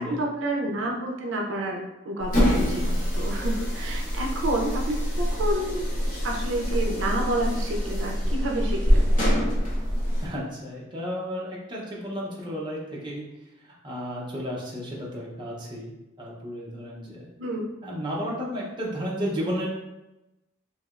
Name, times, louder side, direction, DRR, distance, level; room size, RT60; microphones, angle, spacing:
voice 1, 0.0-5.9 6.2-9.1 17.4-17.7, right 1 dB, 70° right, 0 dB, 0.4 m, -29 dB
sound 1, 2.2-10.3, equal, 40° left, 0.9 m, -25 dB
voice 2, 10.2-13.3 13.6-17.3 17.8-19.7, equal, 25° right, -4 dB, 0.5 m, -33 dB
3.1 x 2.7 x 2.4 m, 0.98 s
head